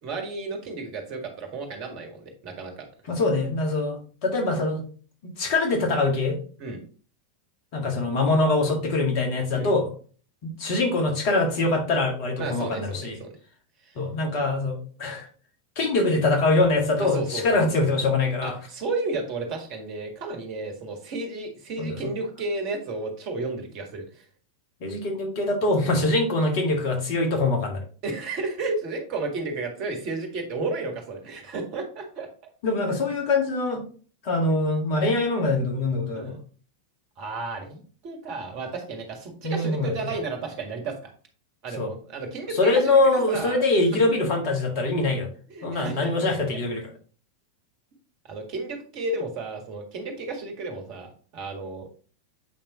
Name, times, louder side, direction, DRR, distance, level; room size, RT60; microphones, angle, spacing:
voice 1, 0.0-2.7 6.6-6.8 9.5-9.7 12.4-13.3 13.8-14.0 17.0-17.6 18.4-24.2 28.0-32.3 36.1-36.4 37.2-41.1 41.6-43.6 43.9-44.0 45.5-46.1 48.3-51.9, right 3 dB, 40° right, 4 dB, 1.8 m, -33 dB
voice 2, 3.1-4.8 5.2-6.4 7.7-9.9 10.4-13.2 14.0-15.3 15.8-18.6 21.8-22.0 24.8-27.8 32.6-33.8 34.2-36.4 39.4-39.9 41.8-41.9 42.5-45.3 45.6-46.9, left 2 dB, 45° left, 2 dB, 1.9 m, -23 dB
8.2 x 5.4 x 3.0 m, 0.41 s
figure-of-eight pair, 90°, 0 cm